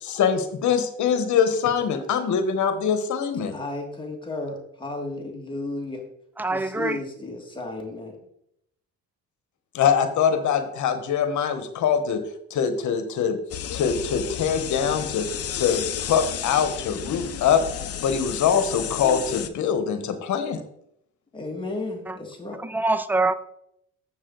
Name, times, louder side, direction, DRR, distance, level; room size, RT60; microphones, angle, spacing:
voice 1, 0.0-3.6 9.7-12.2 12.5-13.4 13.7-15.3 15.5-17.6 18.0-20.6, left 7 dB, 75° left, 9 dB, 1.1 m, -23 dB
voice 2, 3.5-6.0 6.5-8.2 21.3-22.6, left 2 dB, 15° left, 0 dB, 2.0 m, -33 dB
voice 3, 6.4-7.0 22.1-22.2 22.6-23.3, right 2 dB, 5° right, 13 dB, 0.4 m, -24 dB
sound 1, 13.5-19.5, left 9 dB, 50° left, 0.7 m, -32 dB
7.2 x 6.4 x 3.9 m, 0.75 s
cardioid pair, 90°, 30 cm